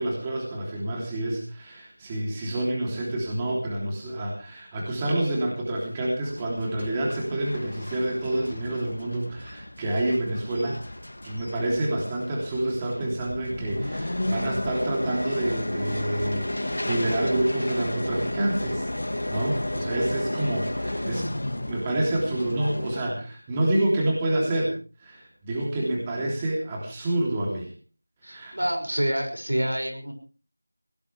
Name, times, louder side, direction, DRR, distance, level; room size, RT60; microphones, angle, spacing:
voice 1, 0.0-10.8 11.2-18.9 19.3-21.3 21.6-24.7 25.0-27.7 28.2-28.5, right 1 dB, 15° right, -2 dB, 3.1 m, -28 dB
sound 1, 6.2-23.0, left 1 dB, 70° left, 2.2 m, -33 dB
voice 2, 28.2-30.1, right 1 dB, 85° right, 5 dB, 6.1 m, -27 dB
20.5 x 17.5 x 3.4 m, 0.37 s
figure-of-eight pair, 175°, 0 cm